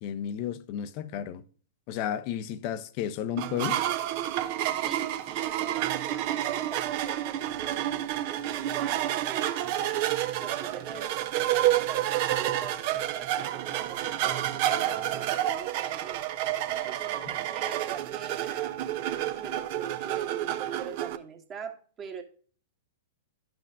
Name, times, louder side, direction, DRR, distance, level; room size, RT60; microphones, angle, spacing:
voice 1, 0.0-1.4 1.9-3.8 16.8-16.9, left 10 dB, 45° left, 0.6 m, -33 dB
sound 1, 3.4-21.2, right 12 dB, 45° right, 0.7 m, -29 dB
voice 2, 4.8-7.9 8.3-9.9 10.4-16.2 16.8-18.7 19.4-22.2, right 6 dB, 25° right, 1.4 m, -43 dB
12.0 x 6.0 x 2.3 m
figure-of-eight pair, 105°, 0 cm